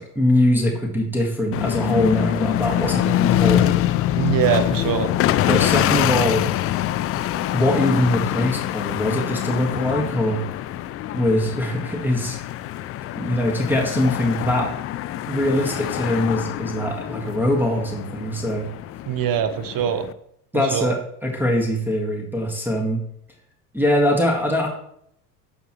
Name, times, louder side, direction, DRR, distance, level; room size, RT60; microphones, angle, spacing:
voice 1, 0.0-3.8 5.5-6.4 7.5-10.4 11.1-12.4 13.1-14.7 15.3-18.7 20.5-23.0 23.7-24.7, left 1 dB, 5° right, -3 dB, 1.8 m, -22 dB
sound 1, 1.5-20.1, left 13 dB, 30° left, 0.4 m, -24 dB
voice 2, 4.2-5.1 19.1-20.0 20.5-20.9, right 9 dB, 45° right, 10 dB, 1.1 m, -23 dB
11.0 x 6.1 x 3.2 m, 0.71 s
hypercardioid pair, 75°, 47 cm